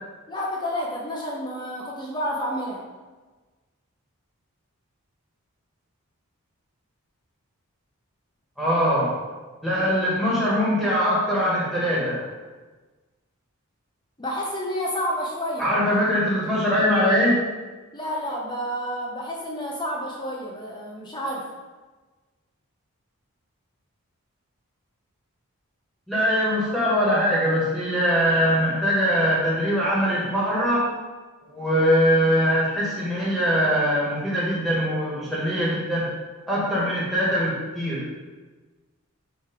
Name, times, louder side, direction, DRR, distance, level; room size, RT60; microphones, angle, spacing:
voice 1, 0.3-2.8 14.2-15.9 17.9-21.5, equal, 20° left, -2 dB, 0.7 m, -30 dB
voice 2, 8.6-9.1 9.6-12.2 15.6-17.3 26.1-30.9 31.4-36.1 36.5-38.0, equal, ahead, -8 dB, 1.6 m, -22 dB
7.3 x 3.2 x 5.1 m, 1.3 s
head